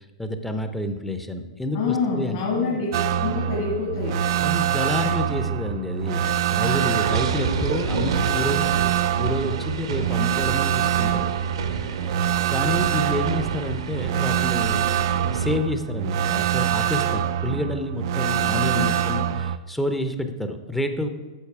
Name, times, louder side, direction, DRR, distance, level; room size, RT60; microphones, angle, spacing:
voice 1, 0.0-2.8 4.4-11.3 11.7-12.2 12.5-14.9 15.3-21.1, left 1 dB, 5° left, 7 dB, 0.7 m, -29 dB
voice 2, 1.7-4.2 18.4-19.0, left 4 dB, 50° left, -2 dB, 2.1 m, -27 dB
sound 1, 2.9-19.6, right 10 dB, 50° right, 0.4 m, -25 dB
sound 2, 6.6-15.6, right 5 dB, 65° right, 0.9 m, -30 dB
10.0 x 6.6 x 4.8 m, 1.3 s
figure-of-eight pair, 110°, 3 cm